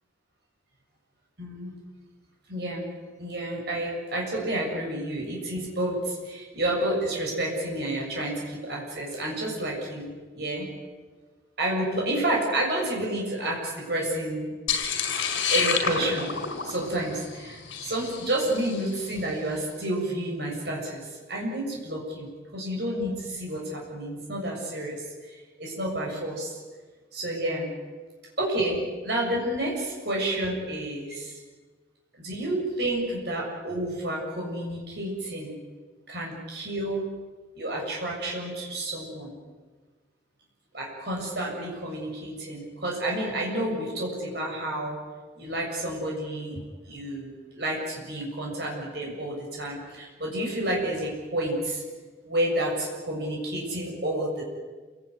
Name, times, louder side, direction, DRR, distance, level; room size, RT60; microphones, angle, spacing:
voice 1, 1.4-1.7 2.5-2.8 3.2-10.7 11.6-14.5 15.5-16.3 16.6-25.0 25.3-26.6 27.1-27.7 28.4-31.3 32.2-35.6 36.1-37.1 37.6-39.4 40.7-45.0 45.4-51.8 52.3-54.4, right 1 dB, 55° right, -2 dB, 7.1 m, -30 dB
sound 1, 14.7-19.0, left 6 dB, 80° left, 4.8 m, -29 dB
27.5 x 19.0 x 9.7 m, 1.4 s
head